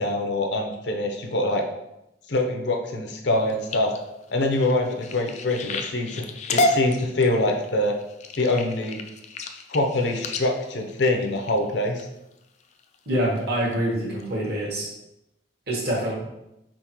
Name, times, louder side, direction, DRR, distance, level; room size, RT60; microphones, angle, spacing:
voice 1, 0.0-1.6 2.3-3.9 4.3-6.2 6.5-8.0 8.4-9.0 9.7-12.1, left 2 dB, 70° left, 3 dB, 0.6 m, -24 dB
sound 1, 3.3-12.0 12.6-12.9 13.4-13.7 14.2-14.3 14.6-14.7, left 2 dB, 40° left, 0.3 m, -30 dB
voice 2, 13.0-14.9 15.7-16.2, right 1 dB, 55° right, -3 dB, 1.3 m, -25 dB
4.5 x 3.6 x 3.0 m, 0.88 s
head